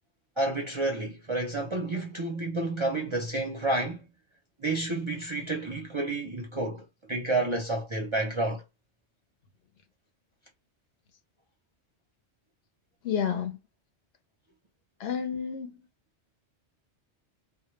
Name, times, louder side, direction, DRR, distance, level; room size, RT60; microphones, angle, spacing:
voice 1, 0.4-4.1 4.6-8.6, right 2 dB, 40° right, 0.5 m, -30 dB
voice 2, 13.0-13.6 15.0-15.7, left 8 dB, 70° left, 0.7 m, -30 dB
2.1 x 2.0 x 2.9 m
omnidirectional pair, 1.2 m